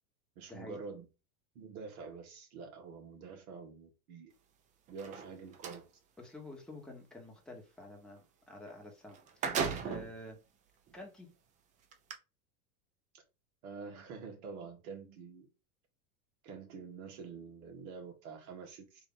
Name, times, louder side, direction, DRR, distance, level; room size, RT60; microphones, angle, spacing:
voice 1, 0.3-1.1 1.5-4.3 4.9-5.8 9.8-10.0 13.6-15.5 16.4-19.1, right 5 dB, 70° right, 1.6 m, -47 dB
sound 1, 4.9-5.8 8.7-8.8 9.1-10.2 10.9-11.0 11.9-12.1, right 6 dB, 20° right, 0.3 m, -36 dB
voice 2, 6.2-10.3 10.9-11.3, left 1 dB, ahead, 1.1 m, -49 dB
3.6 x 2.6 x 3.8 m
supercardioid pair, 125°, 45 cm